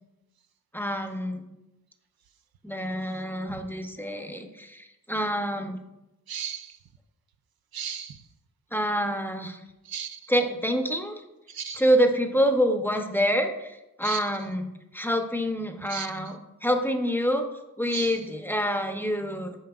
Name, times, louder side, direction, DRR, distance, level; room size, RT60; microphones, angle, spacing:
voice 1, 0.7-1.5 2.6-5.8 8.7-9.6 10.3-11.2 11.7-17.4 17.8-19.6, equal, 5° left, 5 dB, 0.7 m, -27 dB
voice 2, 6.3-6.7 7.7-8.2 9.9-10.2 11.5-11.8 14.0-14.2 15.9-16.1 17.9-18.2, right 8 dB, 70° right, 8 dB, 0.6 m, -34 dB
8.8 x 5.2 x 2.4 m, 0.95 s
cardioid pair, 50°, 38 cm